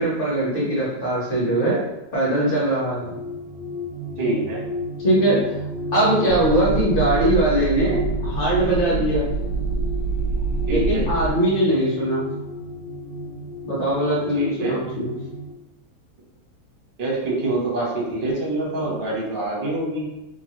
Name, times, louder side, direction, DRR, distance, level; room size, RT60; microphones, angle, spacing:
voice 1, 0.0-1.8 2.1-3.1 5.0-5.4 5.9-9.3 10.7-12.2 13.6-15.2, right 1 dB, 40° left, -5 dB, 0.9 m, -21 dB
sound 1, 2.8-15.5, equal, 90° right, 1.3 m, -33 dB
voice 2, 4.2-4.6 10.7-11.0 14.3-14.7 17.0-20.1, right 2 dB, 50° right, -3 dB, 0.7 m, -25 dB
sound 2, 6.3-11.3, right 3 dB, 80° left, 1.2 m, -26 dB
3.1 x 2.3 x 2.9 m, 0.95 s
omnidirectional pair, 1.9 m